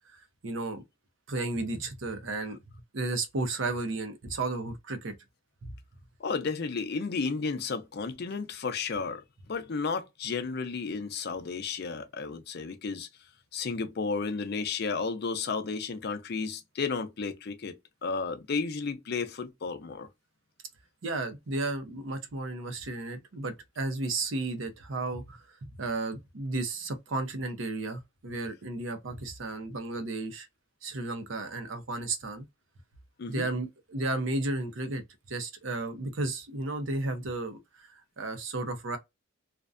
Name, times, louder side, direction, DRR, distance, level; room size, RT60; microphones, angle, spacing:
voice 1, 0.1-0.8 1.3-2.6 2.9-5.1 5.6-5.7 21.0-30.5 30.8-32.4 33.3-35.0 35.3-37.9 38.2-39.0, right 2 dB, 70° right, 0.6 m, -33 dB
voice 2, 6.2-9.2 9.5-13.1 13.5-17.8 18.0-20.1 33.2-33.5, left 4 dB, 55° left, 0.5 m, -33 dB
2.4 x 2.1 x 2.4 m
head